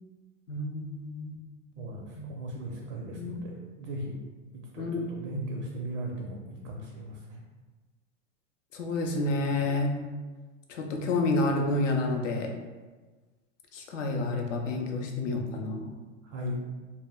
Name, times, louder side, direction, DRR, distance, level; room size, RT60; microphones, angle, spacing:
voice 1, 0.5-1.4 1.8-1.9 2.1-2.3 3.1-3.4 4.8-5.5 8.7-10.0 10.7-12.5 13.7-15.9, left 2 dB, 80° left, 2 dB, 0.6 m, -30 dB
voice 2, 1.8-2.1 2.4-4.2 4.7-7.2 16.3-16.6, right 1 dB, 45° right, -1 dB, 0.5 m, -37 dB
2.1 x 2.0 x 3.5 m, 1.3 s
hypercardioid pair, 105°, 37 cm